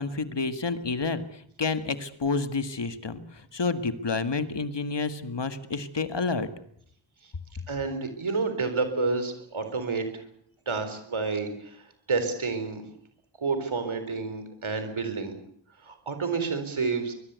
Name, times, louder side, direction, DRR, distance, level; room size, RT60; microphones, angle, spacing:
voice 1, 0.0-6.5, left 4 dB, 60° left, 10 dB, 1.9 m, -29 dB
voice 2, 7.7-10.2 10.7-12.8 13.4-15.3 15.8-17.1, right 4 dB, 85° right, 9 dB, 4.0 m, -29 dB
23.5 x 21.0 x 8.2 m, 0.69 s
wide cardioid pair, 85°, 47 cm